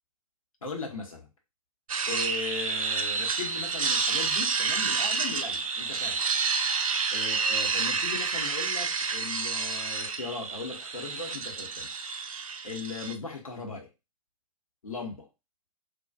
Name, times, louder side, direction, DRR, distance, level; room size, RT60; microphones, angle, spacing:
voice 1, 0.6-1.3 2.1-6.2 7.1-11.9 12.6-13.9 14.8-15.3, left 4 dB, 70° left, 1 dB, 0.9 m, -38 dB
sound 1, 1.9-13.1, right 5 dB, 75° right, 0.4 m, -29 dB
2.6 x 2.3 x 2.2 m, 0.25 s
figure-of-eight pair, 110°, 18 cm